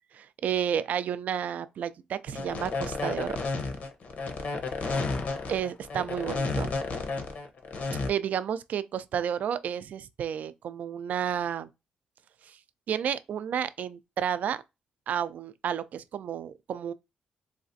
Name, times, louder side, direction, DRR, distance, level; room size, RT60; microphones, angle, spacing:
voice 1, 0.1-3.4 5.5-6.7 8.1-11.7 12.5-12.6 12.9-14.6 15.1-16.9, right 9 dB, 65° right, 0.3 m, -31 dB
sound 1, 2.3-8.1, left 3 dB, 60° left, 0.8 m, -31 dB
Gunshot gunfire, 4.9-6.1, left 5 dB, 45° left, 0.4 m, -43 dB
3.9 x 2.4 x 2.6 m
cardioid pair, 75°, 3 cm